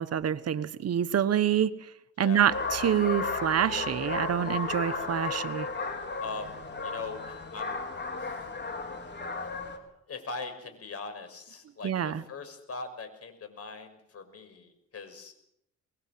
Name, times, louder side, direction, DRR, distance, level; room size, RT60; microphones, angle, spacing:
voice 1, 0.0-1.8 2.2-5.7 11.8-12.2, right 9 dB, 55° right, 13 dB, 1.2 m, -27 dB
voice 2, 2.2-2.5 6.2-7.8 8.2-8.5 9.0-9.5 10.1-15.3, left 4 dB, 50° left, 8 dB, 6.2 m, -41 dB
sound 1, 2.5-9.8, left 3 dB, 35° left, 4.5 m, -34 dB
25.0 x 21.0 x 7.7 m, 0.77 s
cardioid pair, 90°, 30 cm